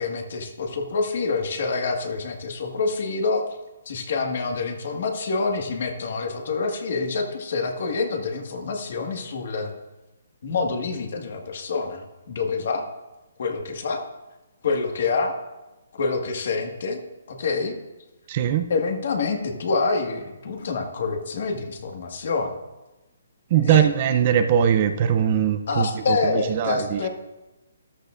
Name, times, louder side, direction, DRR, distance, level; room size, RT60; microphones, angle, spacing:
voice 1, 0.0-3.4 3.8-9.7 10.4-12.8 13.4-14.0 14.6-15.3 15.9-17.0 17.3-17.8 18.7-22.5 23.6-23.9 25.7-27.1, left 4 dB, 55° left, 3 dB, 1.7 m, -26 dB
voice 2, 18.3-18.7 23.5-27.0, right 9 dB, 30° right, 9 dB, 0.6 m, -21 dB
13.5 x 12.0 x 2.5 m, 1.0 s
hypercardioid pair, 165°, 0 cm